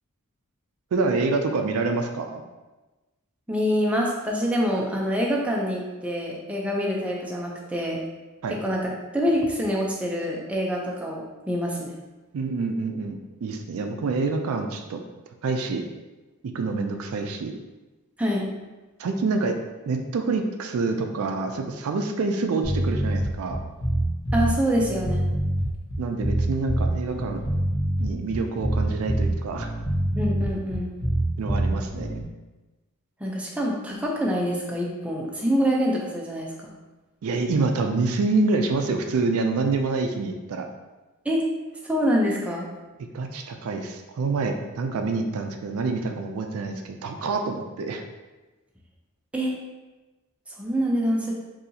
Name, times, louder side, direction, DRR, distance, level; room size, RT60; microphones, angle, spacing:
voice 1, 0.9-2.4 8.4-8.6 12.3-15.0 15.4-15.9 16.5-17.5 19.0-19.6 19.9-23.6 26.0-27.4 28.0-29.7 31.4-32.2 37.2-40.7 43.1-48.0, right 3 dB, 70° right, 5 dB, 0.4 m, -27 dB
voice 2, 3.5-8.0 8.6-11.9 18.2-18.5 24.3-25.3 30.2-30.9 33.2-36.7 41.2-41.5 41.8-42.7 49.3-49.5 50.5-51.3, equal, 5° right, -3 dB, 0.5 m, -26 dB
sound 1, 22.6-32.2, right 1 dB, 55° left, 1.0 m, -25 dB
4.0 x 2.7 x 2.7 m, 1.2 s
head